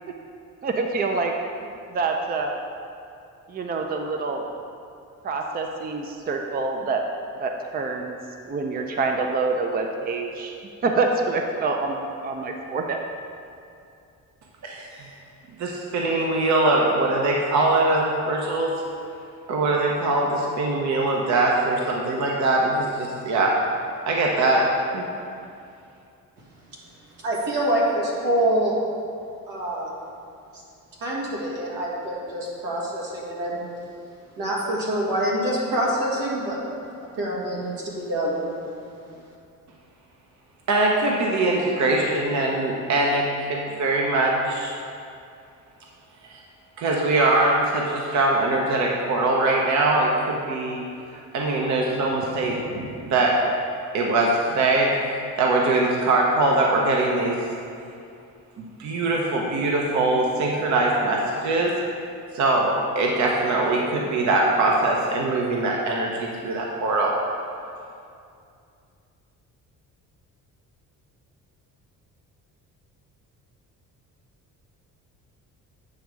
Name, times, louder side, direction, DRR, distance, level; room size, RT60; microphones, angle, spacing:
voice 1, 0.6-1.3 1.9-2.5 3.5-4.5 5.2-7.0 7.4-8.2 8.5-10.5 10.8-13.0, right 3 dB, 30° right, 3 dB, 0.5 m, -26 dB
voice 2, 14.6-15.1 15.6-18.7 19.5-23.5 24.1-24.7 24.9-25.1 40.7-44.7 46.3-46.4 46.8-50.8 51.3-53.4 53.9-57.4 58.8-61.7 62.3-67.1, right 2 dB, 55° right, -1 dB, 0.9 m, -22 dB
voice 3, 27.2-28.8 29.5-29.9 31.0-33.6 34.4-36.6 37.2-38.4, right 1 dB, 85° right, -4 dB, 1.8 m, -25 dB
8.6 x 3.5 x 6.2 m, 2.5 s
cardioid pair, 125°, 33 cm